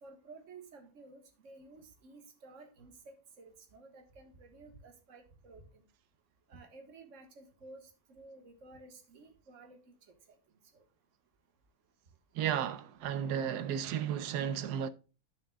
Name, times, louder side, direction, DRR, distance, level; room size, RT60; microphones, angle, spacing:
voice 1, 0.0-5.8 6.5-9.8 10.7-10.8, right 3 dB, 50° right, 1.8 m, -54 dB
voice 2, 12.3-14.9, right 9 dB, 85° right, 1.3 m, -33 dB
11.0 x 6.6 x 2.3 m
omnidirectional pair, 1.7 m